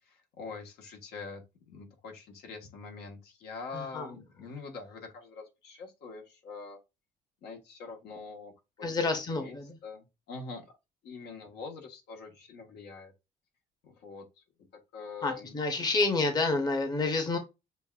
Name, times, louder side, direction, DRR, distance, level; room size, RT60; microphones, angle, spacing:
voice 1, 0.1-6.8 7.4-8.5 8.8-10.6 11.0-13.1 13.8-14.4 14.9-15.6, left 4 dB, 75° left, 1.3 m, -44 dB
voice 2, 3.7-4.1 8.8-9.8 15.2-17.4, left 3 dB, 25° left, 0.9 m, -29 dB
6.5 x 2.5 x 2.4 m
cardioid pair, 110°, 17 cm